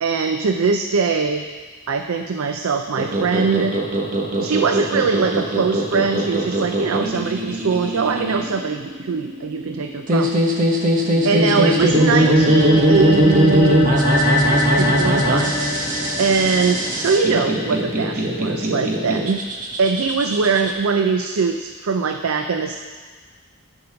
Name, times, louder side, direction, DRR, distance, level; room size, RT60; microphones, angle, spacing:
voice 1, 0.0-1.5 1.9-3.8 4.4-10.3 11.2-15.5 16.2-19.4 19.8-22.8, right 5 dB, 75° right, 6 dB, 0.5 m, -22 dB
sound 1, 3.0-20.7, right 1 dB, 40° right, 1.1 m, -21 dB
sound 2, 11.0-17.7, left 1 dB, 5° right, 2.5 m, -23 dB
11.5 x 5.5 x 5.8 m, 1.5 s
head